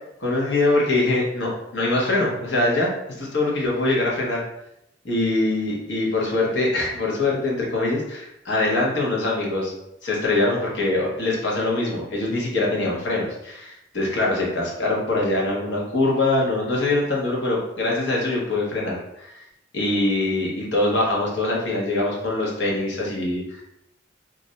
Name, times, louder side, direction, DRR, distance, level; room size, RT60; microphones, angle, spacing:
voice 1, 0.2-4.4 5.0-9.7 10.0-19.4 19.7-23.6, left 2 dB, 75° left, -3 dB, 0.9 m, -23 dB
2.5 x 2.1 x 3.8 m, 0.83 s
head